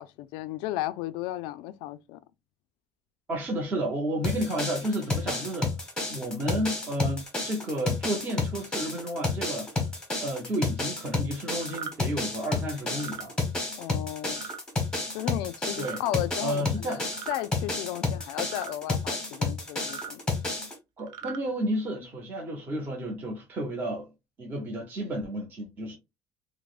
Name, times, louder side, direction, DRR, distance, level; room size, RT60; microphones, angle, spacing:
voice 1, 0.0-2.2 13.8-14.4 15.1-17.0 17.3-20.2, left 14 dB, 85° left, 0.3 m, -34 dB
voice 2, 3.3-5.7 6.1-9.7 10.2-13.3 15.8-16.0 16.4-17.0 21.0-24.1 24.4-26.0, right 1 dB, 25° right, 0.8 m, -31 dB
sound 1, 4.2-20.7, left 3 dB, 10° left, 1.0 m, -31 dB
sound 2, 11.6-11.9 12.9-13.2 14.3-14.6 15.7-16.0 17.1-17.4 18.5-18.7 19.8-20.1 21.0-21.4, right 8 dB, 70° right, 0.6 m, -39 dB
4.6 x 2.1 x 2.3 m
cardioid pair, 165°, 8 cm